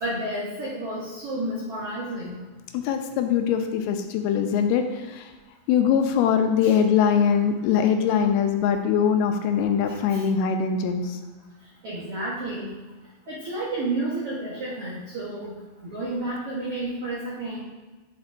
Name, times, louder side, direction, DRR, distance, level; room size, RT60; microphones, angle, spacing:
voice 1, 0.0-2.5 6.6-6.7 9.9-10.2 11.8-12.8 13.3-15.5 15.8-17.6, right 2 dB, 80° right, -8 dB, 1.3 m, -31 dB
voice 2, 2.7-5.3 5.7-11.2, left 7 dB, 80° left, 6 dB, 2.5 m, -22 dB
7.9 x 7.0 x 2.6 m, 1.2 s
omnidirectional pair, 4.6 m